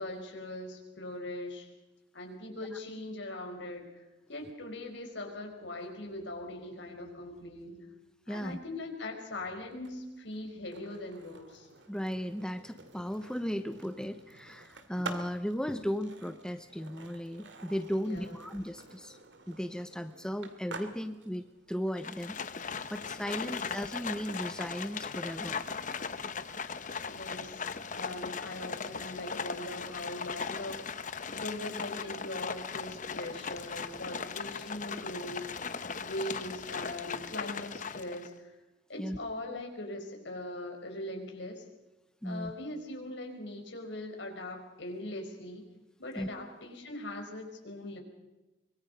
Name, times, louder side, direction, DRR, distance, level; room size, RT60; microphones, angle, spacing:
voice 1, 0.0-1.7 2.1-4.0 4.3-7.8 8.3-11.7 17.9-18.4 23.4-23.8 27.1-27.6 27.9-31.0 31.3-38.6 38.9-41.6 42.2-45.6 46.0-48.0, left 1 dB, 65° left, 3 dB, 4.8 m, -41 dB
voice 2, 8.3-8.6 11.9-19.2 19.5-22.4 22.9-25.6 39.0-39.2 42.2-42.5 46.2-46.3, equal, 5° left, 9 dB, 0.8 m, -36 dB
Skateboard, 9.7-25.6, right 3 dB, 65° right, 2.4 m, -50 dB
Livestock farm animals working animals, 22.0-38.3, left 5 dB, 40° left, 1.0 m, -38 dB
24.5 x 22.5 x 5.2 m, 0.99 s
head